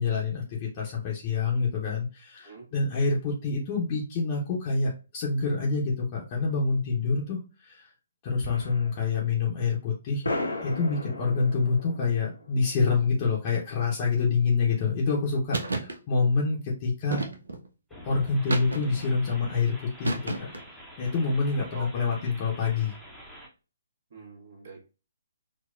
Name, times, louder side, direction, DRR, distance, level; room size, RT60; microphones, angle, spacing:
voice 1, 0.0-7.9 8.2-10.2 10.6-17.2 18.0-20.5 21.0-23.0, left 4 dB, 35° left, -4 dB, 0.7 m, -27 dB
Wide Variety Collection, 8.4-9.2 9.5-9.6 10.2-13.3, left 2 dB, 85° left, 0.9 m, -36 dB
sound 1, 15.5-16.0 17.1-17.7 18.5-19.1 20.0-20.7, right 2 dB, 75° right, 0.6 m, -31 dB
sound 2, 17.9-23.5, equal, ahead, 0.7 m, -47 dB
voice 2, 24.1-24.8, right 2 dB, 55° right, -1 dB, 1.3 m, -44 dB
4.1 x 2.1 x 2.4 m, 0.32 s
figure-of-eight pair, 135°, 0 cm